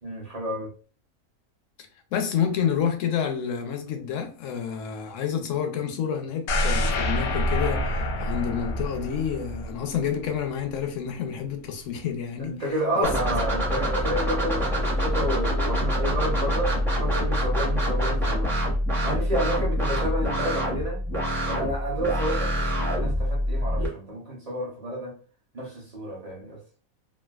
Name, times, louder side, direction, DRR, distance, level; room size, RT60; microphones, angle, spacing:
voice 1, 0.0-0.7 12.4-18.7 19.0-21.0 21.5-25.1 25.5-26.8, right 1 dB, 35° right, 0.6 m, -30 dB
voice 2, 1.8-12.6 13.0-13.1, left 8 dB, 65° left, 0.9 m, -29 dB
sound 1, 6.5-10.5 10.8-10.9, left 1 dB, 80° left, 1.1 m, -27 dB
sound 2, 13.0-23.9, equal, ahead, 0.5 m, -25 dB
3.3 x 2.4 x 2.3 m
omnidirectional pair, 1.6 m